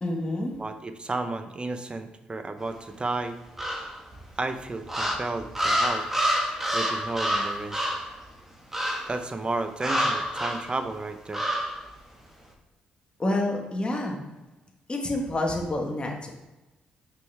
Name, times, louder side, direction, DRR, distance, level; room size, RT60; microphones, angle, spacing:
voice 1, 0.0-0.5 13.2-14.2 14.9-16.3, left 1 dB, 30° left, 1 dB, 1.4 m, -28 dB
voice 2, 0.6-3.4 4.4-6.1 6.7-7.9 9.1-11.4, right 3 dB, 30° right, 8 dB, 0.8 m, -32 dB
sound 1, 3.6-4.2 4.9-8.1 8.7-9.2 9.8-10.7 11.3-11.8, equal, 10° right, 1.6 m, -27 dB
6.5 x 5.2 x 3.4 m, 1.1 s
supercardioid pair, 50°, 3 cm